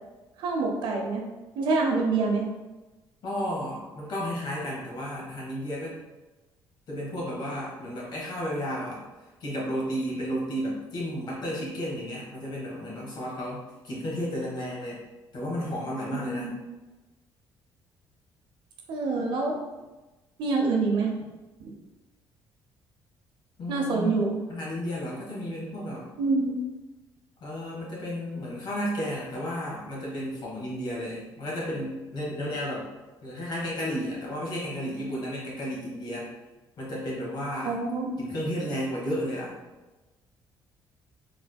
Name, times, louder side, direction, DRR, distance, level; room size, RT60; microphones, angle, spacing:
voice 1, 0.4-1.3 1.6-2.5 16.1-16.5 18.9-19.6 20.4-21.1 21.6-21.7 23.7-24.3 26.2-26.6 37.6-38.2, right 3 dB, 70° right, 1 dB, 0.7 m, -26 dB
voice 2, 3.2-5.9 6.9-9.0 9.4-15.0 15.3-16.5 23.6-24.2 24.5-26.1 27.4-32.9 33.2-36.3 36.8-37.7 38.2-39.5, equal, 60° left, -4 dB, 1.3 m, -33 dB
3.5 x 3.3 x 2.2 m, 1.1 s
cardioid pair, 120°, 8 cm